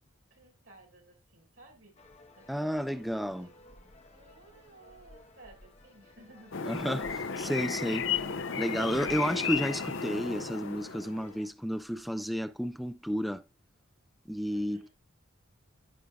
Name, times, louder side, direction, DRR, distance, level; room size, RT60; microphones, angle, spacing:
voice 1, 0.3-2.0 2.3-3.0 3.3-3.5 4.1-6.6 14.5-14.9, right 2 dB, 60° right, 5.1 m, -56 dB
sound 1, 2.0-11.5, left 2 dB, 30° left, 1.2 m, -56 dB
voice 2, 2.5-3.5 6.7-8.1 8.6-13.4 14.3-14.9, equal, ahead, 0.5 m, -32 dB
sound 2, 6.5-11.4, left 6 dB, 60° left, 0.7 m, -34 dB
15.0 x 5.0 x 2.4 m
head